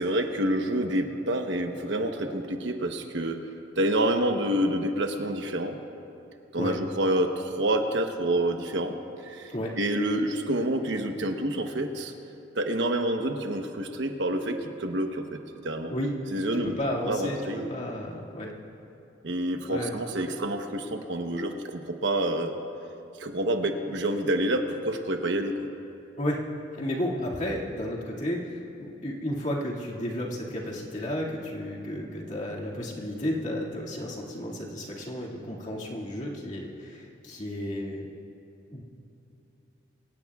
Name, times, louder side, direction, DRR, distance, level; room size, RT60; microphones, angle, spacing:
voice 1, 0.0-3.4 3.8-5.8 6.5-8.9 9.2-12.1 12.5-15.9 16.3-16.7 17.1-17.7 19.2-22.5 23.2-25.6, right 1 dB, 70° right, 5 dB, 1.0 m, -28 dB
voice 2, 16.5-17.4 17.7-18.5 19.7-20.0 26.2-26.4 26.7-38.1 38.7-38.8, left 1 dB, 40° left, -4 dB, 2.2 m, -32 dB
24.5 x 17.5 x 2.4 m, 2.8 s
head